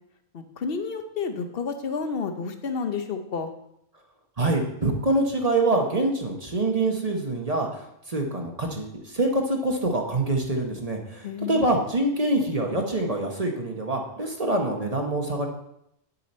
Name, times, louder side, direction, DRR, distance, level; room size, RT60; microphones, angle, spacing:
voice 1, 0.3-3.5 11.2-11.7, left 5 dB, 60° left, 7 dB, 1.0 m, -30 dB
voice 2, 4.4-7.7 8.1-11.2 11.5-15.5, right 2 dB, 35° right, 2 dB, 1.1 m, -25 dB
9.3 x 6.7 x 4.3 m, 0.78 s
omnidirectional pair, 1.2 m